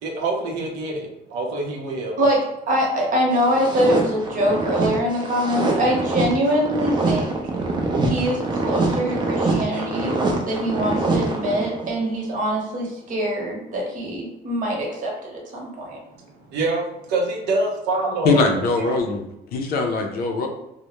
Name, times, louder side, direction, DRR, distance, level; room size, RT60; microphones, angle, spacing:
voice 1, 0.0-2.2 16.1-18.4 18.8-19.0, right 2 dB, 85° right, 0 dB, 0.6 m, -26 dB
voice 2, 2.7-7.3 8.0-10.1 10.5-16.0, equal, 50° right, -1 dB, 0.9 m, -23 dB
sound 1, 3.3-11.9, right 2 dB, 25° right, 0.4 m, -24 dB
voice 3, 18.2-19.2 19.5-20.5, left 3 dB, 65° left, 3 dB, 0.5 m, -21 dB
2.2 x 2.0 x 2.9 m, 0.85 s
cardioid pair, 110°, 17 cm